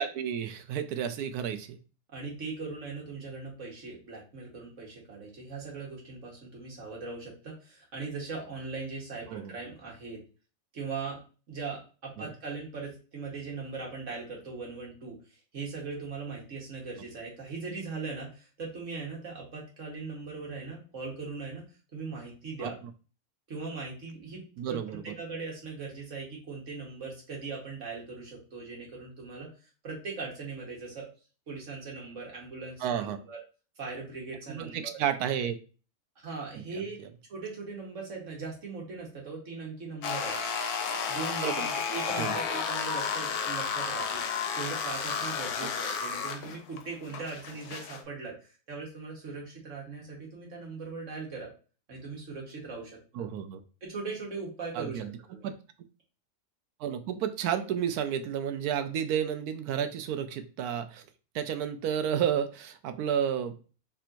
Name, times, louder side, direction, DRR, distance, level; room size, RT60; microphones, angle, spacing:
voice 1, 0.0-1.8 9.3-9.5 12.2-12.3 22.6-22.7 24.6-25.0 32.8-33.2 34.5-35.6 36.7-36.8 41.4-41.7 42.2-42.4 53.2-53.6 54.7-55.1 55.4-55.5 56.8-61.0 61.3-63.6, right 9 dB, 85° right, 9 dB, 1.1 m, -31 dB
voice 2, 2.1-10.2 10.7-11.2 11.5-21.6 21.9-22.7 23.5-24.4 24.7-31.1 31.5-33.4 33.8-35.0 36.2-37.0 37.3-40.4 41.1-44.2 44.5-51.5 51.9-53.0 53.9-55.0 55.3-55.5, right 4 dB, 55° right, -2 dB, 1.6 m, -39 dB
sound 1, 40.0-48.0, left 6 dB, 80° left, 1.1 m, -32 dB
4.3 x 3.4 x 2.6 m, 0.36 s
omnidirectional pair, 1.6 m